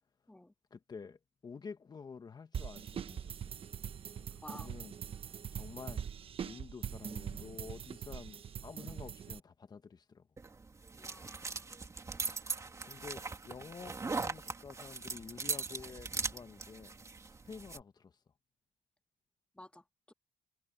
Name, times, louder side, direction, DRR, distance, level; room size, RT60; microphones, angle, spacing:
voice 1, 0.7-3.4 4.1-6.1 6.4-10.2 12.8-16.9 17.5-18.1, left 5 dB, 30° left, 1.5 m, -50 dB
sound 1, 2.5-9.4, right 8 dB, 45° right, 1.2 m, -42 dB
sound 2, 10.4-17.8, right 4 dB, 25° right, 2.5 m, -40 dB
voice 2, 10.9-11.8 19.5-20.1, left 1 dB, 10° left, 1.7 m, -53 dB
cardioid pair, 115°, 13 cm